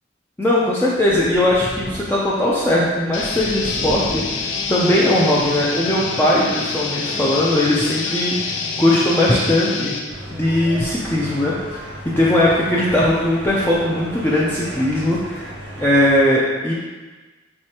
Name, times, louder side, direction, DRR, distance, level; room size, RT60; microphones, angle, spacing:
voice 1, 0.4-8.3 8.8-9.9 10.3-11.8 12.2-16.7, left 1 dB, 10° left, -7 dB, 0.4 m, -19 dB
Thunder, 1.0-6.1 6.5-6.6 7.9-8.0, right 1 dB, 40° right, 0.6 m, -35 dB
sound 1, 3.1-10.0, left 4 dB, 80° left, 0.5 m, -26 dB
sound 2, 10.1-16.2, equal, 90° right, 1.1 m, -34 dB
4.7 x 3.2 x 2.9 m, 1.3 s
head